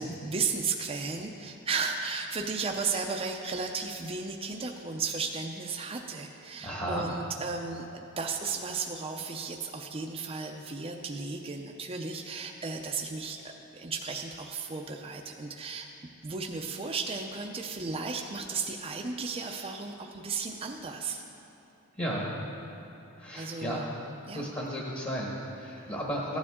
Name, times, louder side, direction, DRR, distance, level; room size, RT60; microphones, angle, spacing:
voice 1, 0.0-15.9 16.2-21.2 23.3-23.8 24.3-24.5, right 4 dB, 25° right, 2 dB, 0.5 m, -34 dB
voice 2, 6.6-7.1 22.0-22.3 23.2-23.8 24.3-26.4, equal, 25° left, -3 dB, 1.2 m, -34 dB
15.0 x 9.5 x 3.6 m, 2.9 s
head